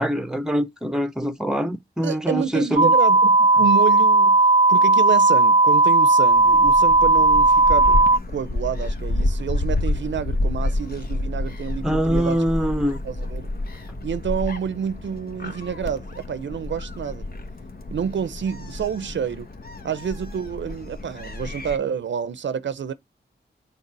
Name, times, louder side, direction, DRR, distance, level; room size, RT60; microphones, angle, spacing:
voice 1, 0.0-2.9 11.8-13.0, equal, 5° right, 0.9 m, -24 dB
voice 2, 2.0-4.4 4.7-8.1 8.3-12.4 12.9-13.5 14.0-17.2 17.9-19.5 19.8-22.9, right 7 dB, 90° right, 0.7 m, -28 dB
sound 1, 2.8-8.2, right 2 dB, 35° right, 0.4 m, -16 dB
Gull seagull, 6.3-21.8, left 2 dB, 55° left, 1.2 m, -29 dB
6.8 x 3.6 x 5.9 m
wide cardioid pair, 80°, 18 cm